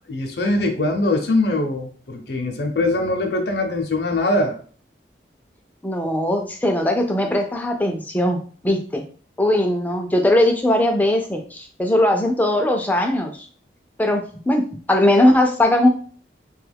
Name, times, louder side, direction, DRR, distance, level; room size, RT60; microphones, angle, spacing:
voice 1, 0.1-4.6, left 2 dB, 65° left, 3 dB, 0.6 m, -22 dB
voice 2, 5.8-9.0 9.4-13.5 14.0-15.9, left 1 dB, 10° left, 3 dB, 0.4 m, -19 dB
2.9 x 2.3 x 3.4 m, 0.43 s
head